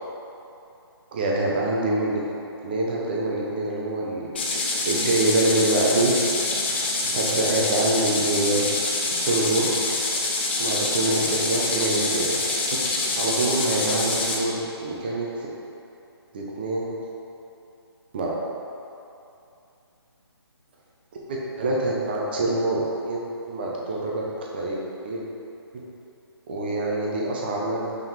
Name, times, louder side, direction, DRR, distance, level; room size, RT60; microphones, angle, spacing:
voice 1, 1.1-2.2 2.6-4.3 4.6-6.3 7.1-8.7 9.2-9.7 10.6-12.4 13.2-15.3 16.3-16.9 18.1-18.4 21.3-24.3 24.5-25.2 25.7-25.8 26.5-27.9, right 2 dB, 20° right, -3 dB, 0.6 m, -25 dB
sound 1, 4.3-14.4, left 2 dB, 25° left, 0.5 m, -26 dB
5.8 x 3.7 x 4.6 m, 2.7 s
hypercardioid pair, 170°, 14 cm